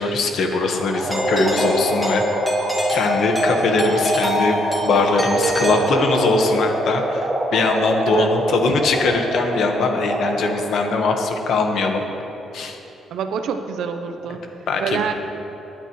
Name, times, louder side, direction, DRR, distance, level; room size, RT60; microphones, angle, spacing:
voice 1, 0.0-2.2 2.9-12.0 12.5-12.8 14.7-15.0, left 3 dB, 70° left, 4 dB, 1.4 m, -21 dB
sound 1, 0.7-10.7, right 1 dB, 25° right, 1.8 m, -26 dB
Doorbell, 1.1-6.5, equal, 5° left, 2.4 m, -24 dB
voice 2, 13.1-14.4 14.8-15.1, right 6 dB, 75° right, 7 dB, 0.8 m, -26 dB
19.5 x 9.0 x 3.2 m, 2.9 s
cardioid pair, 90°, 0 cm